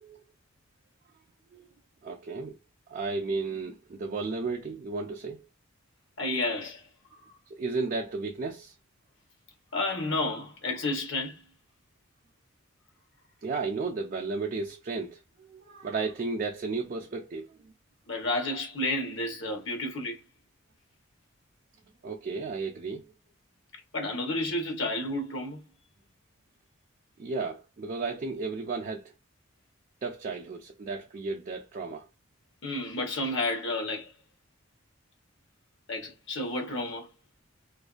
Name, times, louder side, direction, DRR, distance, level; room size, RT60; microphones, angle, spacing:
voice 1, 2.0-2.6 2.9-5.5 7.5-8.7 13.4-17.7 22.0-23.1 27.2-29.1 30.0-32.1, right 4 dB, 40° right, 0.4 m, -34 dB
voice 2, 6.2-6.9 9.7-11.4 18.1-20.2 23.9-25.6 32.6-34.1 35.9-37.1, left 2 dB, 65° left, 0.9 m, -31 dB
2.5 x 2.2 x 2.3 m
head